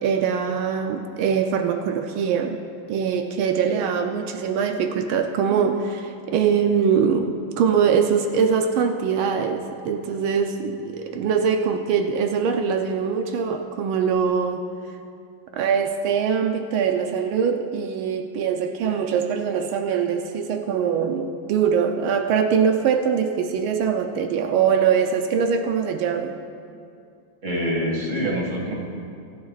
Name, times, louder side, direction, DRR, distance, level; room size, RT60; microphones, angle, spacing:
voice 1, 0.0-2.6 2.9-14.6 15.5-26.3, right 7 dB, 85° right, 4 dB, 1.5 m, -22 dB
voice 2, 27.4-28.7, equal, 40° right, -2 dB, 2.4 m, -25 dB
24.5 x 11.5 x 2.4 m, 2.5 s
omnidirectional pair, 2.2 m